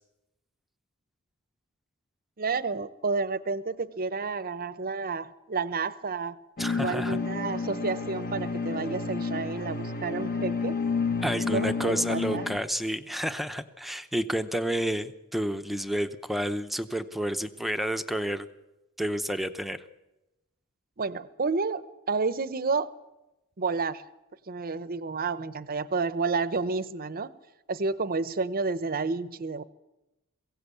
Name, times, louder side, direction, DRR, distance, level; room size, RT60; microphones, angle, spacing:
voice 1, 2.4-6.4 6.8-10.8 11.5-12.4 21.0-22.9 23.6-24.0 24.5-27.3 27.7-29.6, right 4 dB, 40° right, 15 dB, 0.8 m, -30 dB
sound 1, 6.6-12.6, left 4 dB, 40° left, 1.1 m, -30 dB
voice 2, 6.6-7.2 11.2-18.5 19.0-19.8, equal, ahead, 8 dB, 0.8 m, -30 dB
22.5 x 16.5 x 8.3 m, 0.98 s
head